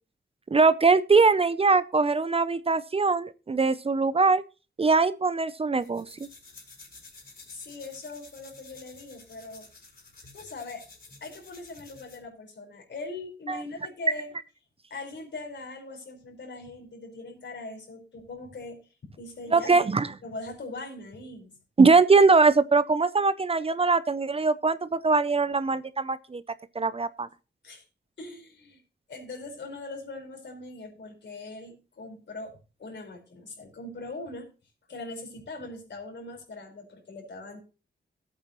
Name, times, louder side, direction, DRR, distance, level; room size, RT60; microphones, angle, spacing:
voice 1, 0.5-4.4 4.8-6.1 13.5-13.6 19.5-20.1 21.8-26.4 26.8-27.3, right 4 dB, 30° right, 15 dB, 0.5 m, -22 dB
sound 1, 5.8-12.3, left 3 dB, 55° left, 4.6 m, -51 dB
voice 2, 7.5-9.6 10.3-10.8 11.2-14.3 14.9-19.9 20.2-21.5 27.6-27.8 28.2-28.8 29.1-34.5 34.9-37.6, left 3 dB, 70° left, 2 dB, 4.5 m, -41 dB
17.0 x 8.7 x 3.0 m, 0.33 s
wide cardioid pair, 125°, 19 cm